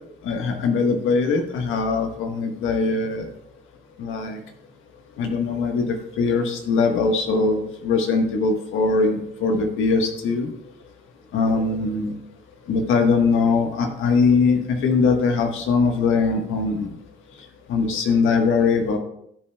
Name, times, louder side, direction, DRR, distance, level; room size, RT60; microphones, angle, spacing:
voice 1, 0.2-3.3 4.0-4.4 5.2-10.5 11.3-12.1 12.7-16.9 17.7-19.0, left 4 dB, 85° left, 4 dB, 1.4 m, -21 dB
13.5 x 7.6 x 2.3 m, 0.73 s
cardioid pair, 90°, 20 cm